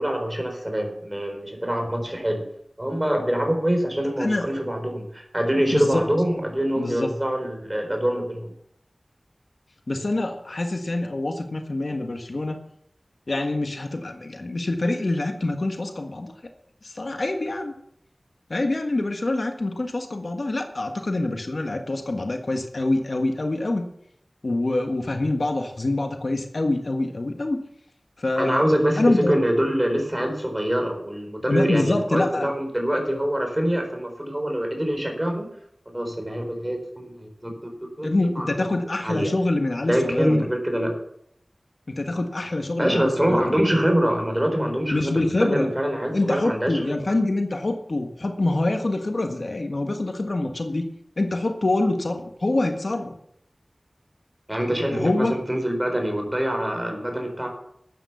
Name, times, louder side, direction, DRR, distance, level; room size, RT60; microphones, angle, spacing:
voice 1, 0.0-2.4 2.8-8.5 28.4-35.5 35.9-37.5 38.0-39.3 39.9-40.9 42.8-47.0 54.5-57.5, equal, 20° right, 4 dB, 4.4 m, -25 dB
voice 2, 5.7-6.0 6.8-7.1 9.9-12.6 13.3-16.3 16.8-17.7 18.5-23.9 24.4-27.6 28.2-28.7 29.0-29.3 31.5-32.5 38.0-40.5 41.9-43.6 44.9-45.7 46.1-50.9 51.2-53.1 54.9-55.3, left 2 dB, 70° left, 5 dB, 1.6 m, -25 dB
12.5 x 9.1 x 7.0 m, 0.72 s
wide cardioid pair, 50°, 0 cm